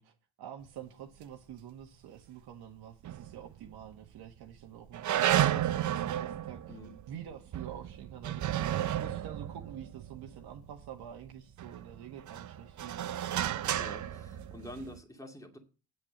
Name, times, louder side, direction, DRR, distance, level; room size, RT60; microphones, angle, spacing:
voice 1, 0.0-6.8 7.1-13.1, right 9 dB, 60° right, 1.6 m, -47 dB
sound 1, 3.0-3.8 4.2-4.3 4.9-11.1 11.6-15.0, right 12 dB, 40° right, 0.7 m, -33 dB
voice 2, 13.7-15.6, left 1 dB, 5° left, 2.3 m, -47 dB
9.0 x 6.3 x 7.3 m
supercardioid pair, 90°, 44 cm